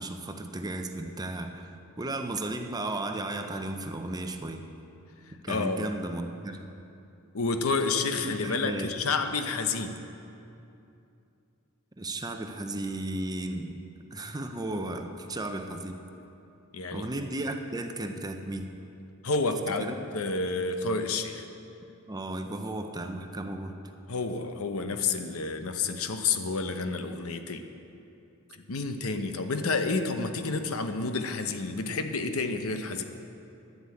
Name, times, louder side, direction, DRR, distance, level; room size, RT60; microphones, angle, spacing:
voice 1, 0.0-4.6 5.4-6.7 8.2-8.9 12.0-13.8 14.1-16.0 16.9-18.7 19.8-20.0 22.1-23.8, right 2 dB, 20° right, 5 dB, 0.6 m, -34 dB
voice 2, 5.3-5.9 7.3-10.0 16.7-17.1 19.2-21.4 24.1-27.7 28.5-33.0, left 4 dB, 75° left, 7 dB, 0.8 m, -30 dB
11.0 x 7.9 x 8.4 m, 2.7 s
head